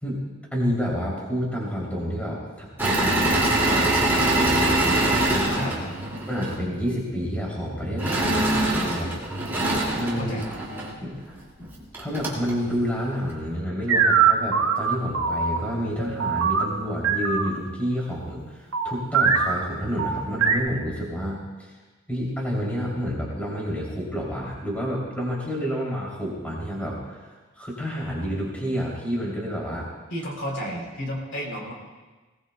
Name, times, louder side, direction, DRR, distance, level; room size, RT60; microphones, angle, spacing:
voice 1, 0.5-5.7 6.3-9.1 9.9-10.4 11.0-11.4 12.0-21.7 22.1-29.9, equal, 5° left, -5 dB, 3.1 m, -29 dB
Engine / Mechanisms, 2.8-6.6 8.0-10.9 11.6-11.7 11.9-12.5, right 1 dB, 10° right, 2.4 m, -23 dB
voice 2, 5.6-5.9 10.2-10.4 30.1-31.7, equal, 55° left, -1 dB, 3.3 m, -32 dB
sound 1, 13.9-17.5 18.7-19.6 20.0-20.6, right 6 dB, 80° right, 1.3 m, -22 dB
20.5 x 18.5 x 2.3 m, 1.3 s
head